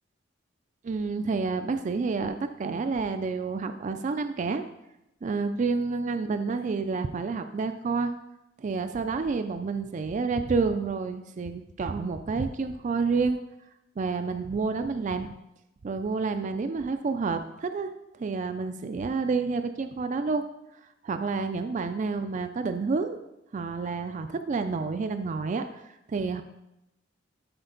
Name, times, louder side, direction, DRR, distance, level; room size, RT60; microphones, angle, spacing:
voice 1, 0.8-4.6 5.2-8.1 8.6-13.4 14.0-15.3 15.8-17.9 18.2-20.4 21.0-23.2 23.5-25.8 26.1-26.4, right 4 dB, 40° right, 8 dB, 0.3 m, -29 dB
12.5 x 4.4 x 3.9 m, 0.89 s
head